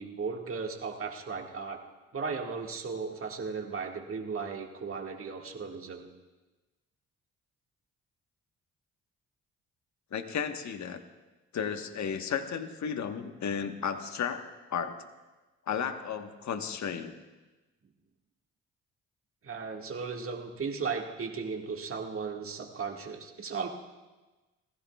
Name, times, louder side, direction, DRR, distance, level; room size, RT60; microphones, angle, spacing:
voice 1, 0.0-1.8 2.1-6.1 19.4-23.7, right 5 dB, 40° right, 2 dB, 1.9 m, -36 dB
voice 2, 10.1-11.0 11.5-15.0 15.7-17.1, left 7 dB, 55° left, 7 dB, 1.3 m, -34 dB
29.0 x 15.5 x 2.4 m, 1.2 s
hypercardioid pair, 45°, 33 cm